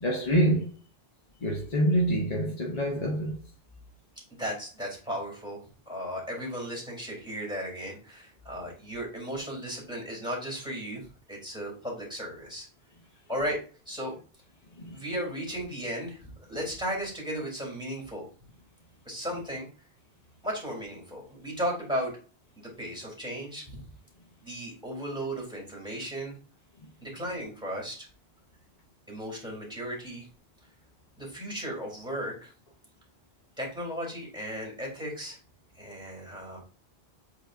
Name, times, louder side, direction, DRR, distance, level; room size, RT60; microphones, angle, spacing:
voice 1, 0.0-0.8 1.4-3.4 14.8-15.0, equal, 40° left, 0.9 m, -26 dB
voice 2, 4.4-5.6 5.9-11.0 11.3-12.7 13.3-14.1 14.9-18.3 19.0-19.7 20.4-22.2 22.6-23.8 24.4-26.3 27.0-28.1 29.1-30.3 31.2-32.5 33.6-35.4 35.7-36.6, equal, 5° right, 3.0 m, -35 dB
7.9 x 4.7 x 2.6 m
omnidirectional pair, 1.1 m